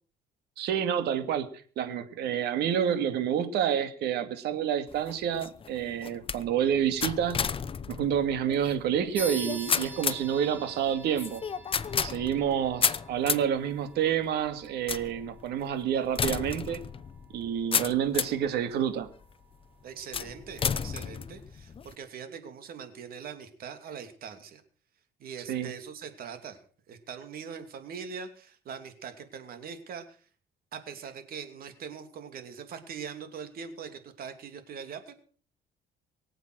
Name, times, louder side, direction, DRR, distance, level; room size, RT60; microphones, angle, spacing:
voice 1, 0.6-1.5 1.8-7.4 7.9-11.4 12.0-16.8 17.3-19.1 25.5-25.7, right 9 dB, 75° right, 2.3 m, -28 dB
sound 1, 4.9-18.5 19.1-19.5 20.1-21.9, left 7 dB, 30° left, 0.8 m, -33 dB
sound 2, 9.1-19.1, right 1 dB, 10° right, 3.1 m, -46 dB
voice 2, 19.8-24.6 25.2-26.6 26.9-30.2 30.7-35.1, right 6 dB, 60° right, 2.9 m, -42 dB
23.5 x 7.9 x 6.3 m
cardioid pair, 110°, 17 cm